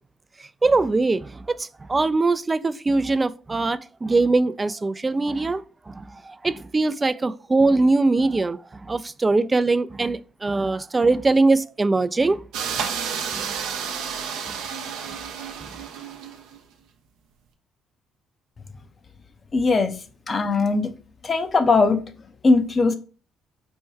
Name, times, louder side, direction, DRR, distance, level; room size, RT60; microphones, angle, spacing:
voice 1, 0.6-12.4 12.8-12.9 14.5-14.6 15.6-15.7, right 3 dB, 25° right, 0.3 m, -22 dB
sound 1, 12.5-16.6, right 7 dB, 75° right, 0.6 m, -31 dB
voice 2, 19.5-19.9 20.3-20.9 21.2-22.0 22.4-23.0, left 3 dB, 40° left, 0.7 m, -19 dB
4.4 x 2.2 x 4.4 m
hypercardioid pair, 55°, 0 cm